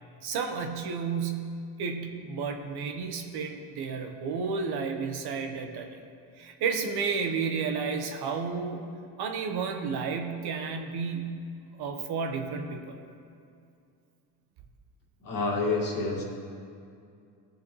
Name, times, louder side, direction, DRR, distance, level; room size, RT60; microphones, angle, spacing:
voice 1, 0.2-6.1 6.4-8.9 9.2-11.4 11.8-13.0, right 5 dB, 60° right, 4 dB, 1.2 m, -32 dB
voice 2, 15.2-16.2, left 3 dB, 50° left, -1 dB, 2.0 m, -28 dB
15.5 x 6.9 x 3.2 m, 2.4 s
supercardioid pair, 95°, 44 cm